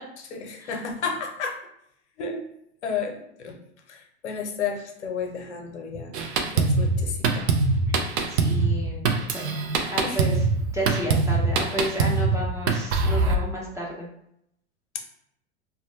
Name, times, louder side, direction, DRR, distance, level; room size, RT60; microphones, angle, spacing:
voice 1, 0.3-1.6 2.2-2.4 2.8-3.6 3.9-6.1 6.4-7.5 10.0-10.2, left 5 dB, 90° left, 3 dB, 0.6 m, -32 dB
Drum kit, 6.1-13.4, right 4 dB, 75° right, 0.5 m, -23 dB
voice 2, 8.3-9.1 9.3-9.4 9.8-10.4 10.7-14.1, equal, 10° right, -4 dB, 0.5 m, -32 dB
2.2 x 2.0 x 2.9 m, 0.75 s
hypercardioid pair, 100°, 33 cm